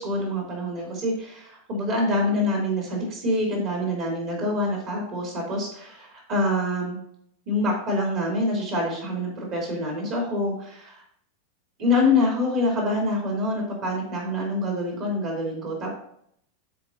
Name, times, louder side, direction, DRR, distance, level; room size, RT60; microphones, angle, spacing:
voice 1, 0.0-7.0 7.5-11.0 11.8-15.9, left 2 dB, 40° right, -1 dB, 2.8 m, -26 dB
12.5 x 4.4 x 2.8 m, 0.69 s
figure-of-eight pair, 90°, 0 cm